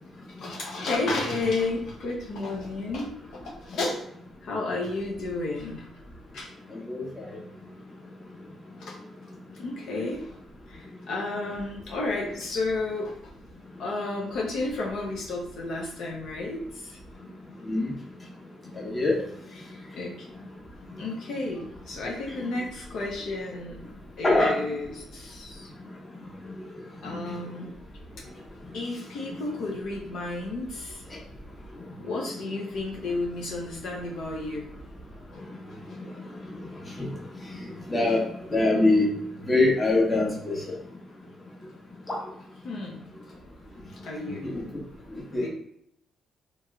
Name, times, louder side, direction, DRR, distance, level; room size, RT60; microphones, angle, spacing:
voice 1, 0.4-4.1 4.4-5.9 6.3-6.5 8.8-9.0 9.6-10.3 10.7-13.2 13.8-17.0 19.5-20.3 21.0-23.8 24.2-25.7 27.0-27.8 28.7-31.0 32.0-34.7 35.3-35.4 38.1-38.2 42.6-43.1 43.9-44.5 45.4-45.5, left 2 dB, 75° left, -1 dB, 0.7 m, -32 dB
voice 2, 6.7-7.3 17.6-17.9 18.7-19.2 24.2-24.6 26.4-26.5 36.0-36.1 37.0-37.1 37.9-38.2 38.5-39.1 39.4-40.6 42.1-42.2 44.4-44.6 45.1-45.5, left 2 dB, 25° left, -2 dB, 1.1 m, -24 dB
3.0 x 2.9 x 2.3 m, 0.72 s
cardioid pair, 90°, 0 cm